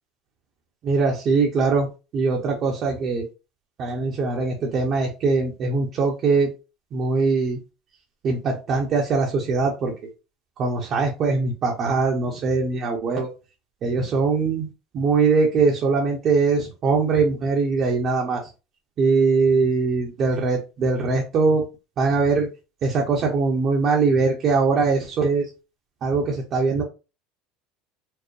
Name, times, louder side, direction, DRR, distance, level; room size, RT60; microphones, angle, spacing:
voice 1, 0.8-1.9 2.1-3.3 3.8-6.5 6.9-7.6 8.2-9.9 10.6-13.3 13.8-14.7 14.9-18.4 19.0-21.6 22.0-22.5 22.8-25.4 26.0-26.8, right 4 dB, 45° right, -1 dB, 0.9 m, -21 dB
4.6 x 2.1 x 3.2 m, 0.30 s
supercardioid pair, 135°, 0 cm